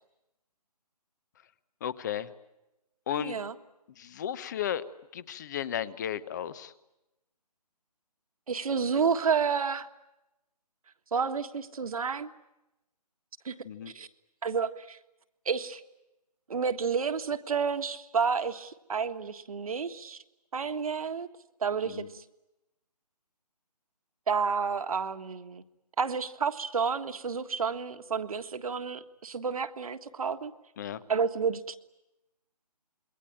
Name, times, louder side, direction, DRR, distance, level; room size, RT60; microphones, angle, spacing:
voice 1, 1.8-2.3 3.1-3.4 4.0-4.8 5.1-6.7 13.6-13.9 21.8-22.1 30.8-31.0, left 10 dB, 25° left, 17 dB, 1.0 m, -34 dB
voice 2, 3.2-3.5 8.5-9.9 11.1-12.3 13.4-13.5 13.9-14.1 14.4-15.0 15.4-15.8 16.5-20.2 20.5-21.3 21.6-22.2 24.3-25.6 26.0-30.5 31.1-31.8, right 6 dB, 60° right, 9 dB, 1.6 m, -30 dB
27.0 x 22.0 x 8.9 m, 0.94 s
figure-of-eight pair, 155°, 21 cm